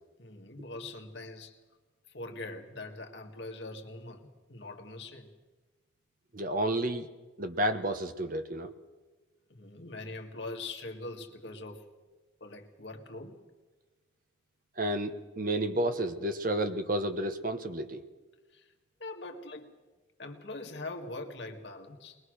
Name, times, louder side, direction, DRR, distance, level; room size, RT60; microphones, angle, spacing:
voice 1, 0.2-1.5 2.1-5.3 9.5-11.8 12.4-13.4 18.5-18.7 19.0-19.7 20.2-22.2, left 2 dB, 60° left, 3 dB, 2.0 m, -42 dB
voice 2, 6.3-7.1 7.4-8.7 14.8-18.0, right 1 dB, 45° right, 8 dB, 1.2 m, -31 dB
22.0 x 21.0 x 6.4 m, 1.2 s
head